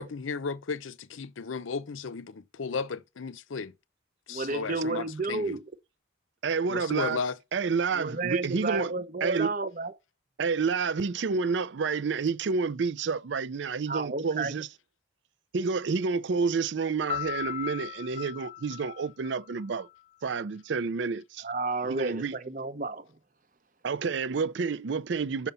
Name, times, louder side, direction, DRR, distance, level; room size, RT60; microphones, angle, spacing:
voice 1, 0.0-3.7 4.3-5.6 6.7-7.4, left 5 dB, 90° left, 0.6 m, -34 dB
voice 2, 4.3-5.6 7.9-9.9 13.9-14.6 21.4-23.1, right 3 dB, 45° right, 0.8 m, -31 dB
voice 3, 6.4-7.2 7.5-8.9 9.2-9.5 10.4-14.7 15.5-19.9 20.2-21.5 21.8-22.3 23.8-25.5, right 5 dB, 65° right, 0.5 m, -29 dB
Piano, 17.1-19.9, left 13 dB, 30° left, 0.9 m, -37 dB
5.7 x 5.5 x 6.7 m
head